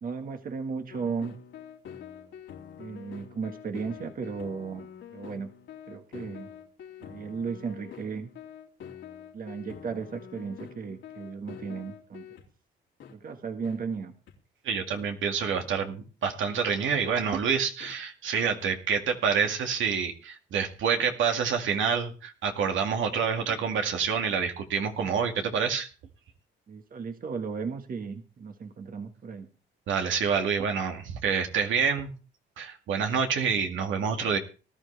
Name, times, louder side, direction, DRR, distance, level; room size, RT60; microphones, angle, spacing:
voice 1, 0.0-1.4 2.8-5.5 5.9-6.5 7.0-8.3 9.3-12.3 13.1-14.1 26.7-29.5, right 5 dB, 45° right, 5 dB, 1.6 m, -35 dB
sound 1, 0.9-12.5 13.0-13.1 13.6-13.8 14.3-14.4 14.9-15.0 15.5-15.7 16.2-16.3 17.0-17.1 17.8-17.9 18.6-18.7 19.4-19.5, left 9 dB, 75° left, 3.0 m, -46 dB
voice 2, 14.6-25.9 29.9-32.1 32.6-34.4, right 6 dB, 75° right, 4 dB, 2.1 m, -27 dB
19.0 x 11.5 x 3.4 m, 0.36 s
cardioid pair, 90°, 20 cm